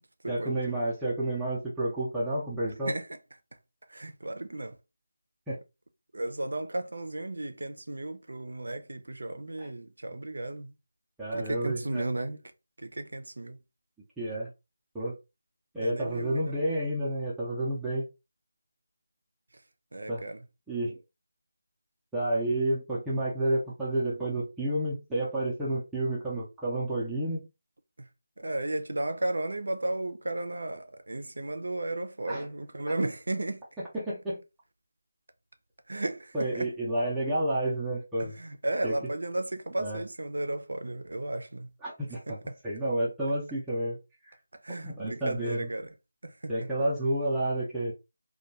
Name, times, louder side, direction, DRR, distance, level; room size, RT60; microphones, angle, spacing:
voice 1, 0.3-2.9 5.5-5.6 9.6-9.7 11.2-12.0 14.2-14.5 14.9-15.2 15.7-18.1 20.1-20.2 20.7-21.0 22.1-27.4 32.3-32.5 33.9-34.4 36.3-38.4 38.8-39.0 39.8-40.0 41.8-42.4 42.6-44.0 44.3-44.4 44.8-45.7 46.5-47.9, right 1 dB, 5° right, 0.5 m, -30 dB
voice 2, 3.9-4.8 6.1-10.7 11.3-12.4 12.8-13.6 15.8-16.6 19.9-20.4 28.4-33.6 35.9-36.7 38.2-41.7 42.3-42.6 44.6-45.9 46.2-46.7, right 2 dB, 80° right, 0.5 m, -34 dB
2.2 x 2.2 x 2.8 m
figure-of-eight pair, 165°, 0 cm